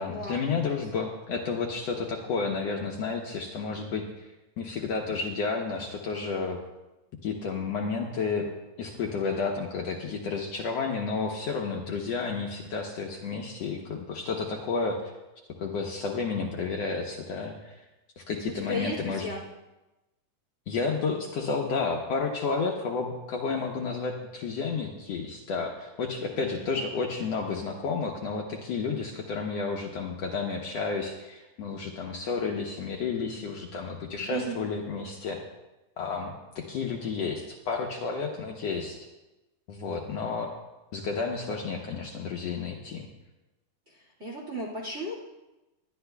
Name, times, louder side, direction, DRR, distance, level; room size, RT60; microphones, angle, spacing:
voice 1, 0.0-4.3 4.6-6.6 7.2-8.5 8.8-15.0 15.6-17.8 18.2-19.3 20.7-35.4 36.0-39.0 39.7-40.5 40.9-43.1, left 4 dB, 70° left, 0 dB, 1.6 m, -31 dB
voice 2, 18.5-19.4 26.4-26.5 34.2-34.6 44.2-45.1, equal, 30° right, -4 dB, 1.6 m, -34 dB
20.0 x 11.5 x 2.3 m, 1.0 s
omnidirectional pair, 3.9 m